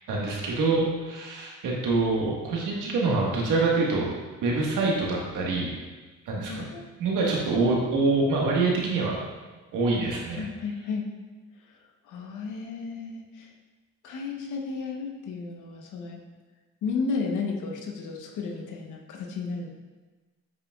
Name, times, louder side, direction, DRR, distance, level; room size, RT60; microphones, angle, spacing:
voice 1, 0.0-4.1 4.4-5.7 6.2-6.6 7.0-9.2 9.7-10.4, right 3 dB, 85° right, -3 dB, 1.5 m, -25 dB
voice 2, 6.5-7.6 10.3-11.1 11.7-11.8 12.0-13.5 14.0-16.2 16.8-19.7, left 4 dB, 80° left, 1 dB, 1.0 m, -33 dB
8.0 x 5.8 x 2.3 m, 1.3 s
cardioid pair, 90°, 30 cm